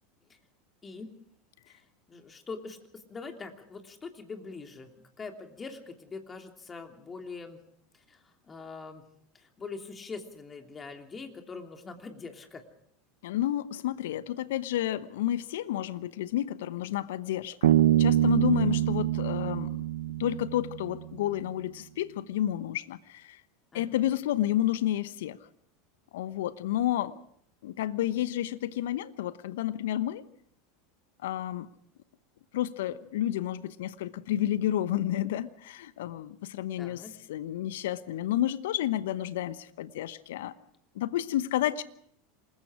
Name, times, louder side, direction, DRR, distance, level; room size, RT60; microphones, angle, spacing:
voice 1, 1.7-7.6 7.9-9.0 9.3-12.6 18.4-18.5 23.7-24.0 36.8-37.1, left 4 dB, 25° left, 4 dB, 3.0 m, -43 dB
voice 2, 13.2-19.8 20.2-23.4 23.7-25.4 26.1-27.2 27.6-30.2 31.2-31.7 32.5-37.0 37.3-40.5 40.9-41.8, left 12 dB, 70° left, 15 dB, 1.0 m, -30 dB
Bass guitar, 17.6-21.2, right 12 dB, 75° right, 1.0 m, -25 dB
27.5 x 20.5 x 4.9 m, 0.68 s
hypercardioid pair, 85°, 0 cm